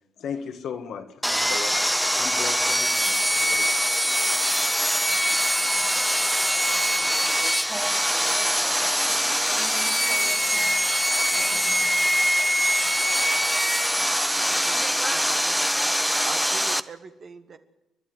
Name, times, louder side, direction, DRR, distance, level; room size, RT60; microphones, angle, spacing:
voice 1, 0.2-3.9, left 7 dB, 70° left, 1.8 m, -37 dB
Sawing, 1.2-16.8, equal, ahead, 0.8 m, -23 dB
voice 2, 7.0-12.3, right 2 dB, 25° right, 3.6 m, -42 dB
voice 3, 14.3-15.6 16.2-17.6, right 5 dB, 50° right, 1.4 m, -42 dB
29.5 x 11.0 x 8.0 m
cardioid pair, 90°, 0 cm